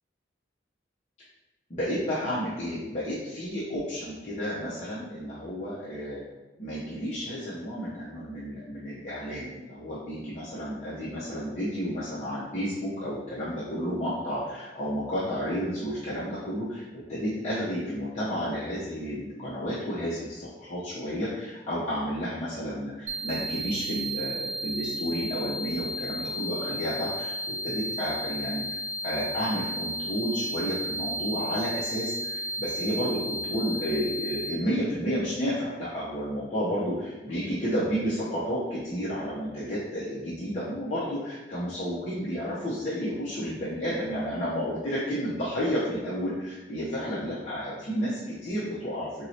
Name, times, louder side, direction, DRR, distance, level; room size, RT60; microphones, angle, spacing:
voice 1, 1.7-6.2 6.6-49.3, equal, 40° left, -9 dB, 0.6 m, -31 dB
sound 1, 23.1-34.5, equal, 40° right, 0.4 m, -33 dB
4.4 x 2.0 x 2.7 m, 1.1 s
head